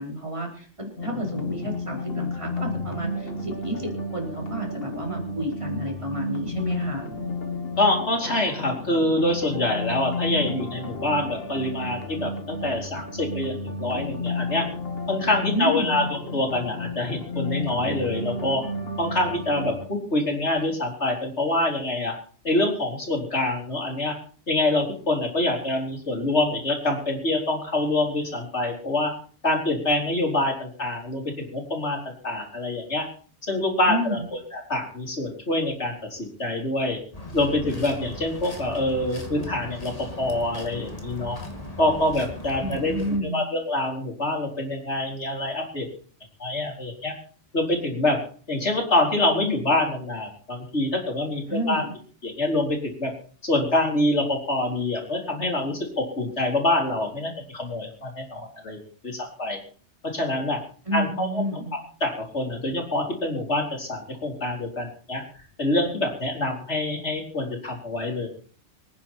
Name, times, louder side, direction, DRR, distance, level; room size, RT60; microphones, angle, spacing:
voice 1, 0.0-7.1 15.5-16.0 33.8-34.2 42.6-43.4 51.5-51.9 60.8-61.7, equal, 25° right, -1 dB, 4.9 m, -30 dB
sound 1, 1.0-19.9, left 2 dB, 55° left, 1.9 m, -32 dB
voice 2, 7.8-14.6 15.1-18.6 19.0-22.1 22.4-24.1 24.5-29.1 29.4-33.0 33.4-34.2 34.5-37.0 37.3-39.9 40.2-41.4 41.8-45.9 46.4-47.1 47.5-48.2 48.5-51.8 52.2-53.1 53.4-59.6 60.1-60.6 60.9-61.4 62.0-65.2 65.6-68.3, left 2 dB, 75° left, 1 dB, 4.4 m, -25 dB
sound 2, 37.1-43.2, left 1 dB, 30° left, 2.5 m, -38 dB
26.0 x 9.8 x 4.5 m, 0.44 s
omnidirectional pair, 1.2 m